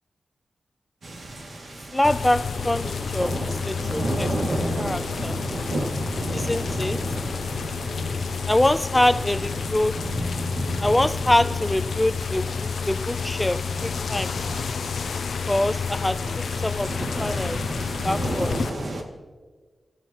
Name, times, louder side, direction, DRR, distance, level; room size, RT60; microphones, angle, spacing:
sound 1, 1.0-19.0, right 1 dB, 70° right, 2.3 m, -33 dB
voice 1, 1.9-4.3 4.8-5.4 6.3-7.0 8.5-10.0 10.8-14.4 15.5-18.6, left 1 dB, 15° left, 0.4 m, -25 dB
sound 2, 2.0-18.7, left 6 dB, 85° left, 0.4 m, -30 dB
27.0 x 15.0 x 3.0 m
wide cardioid pair, 95°, 0 cm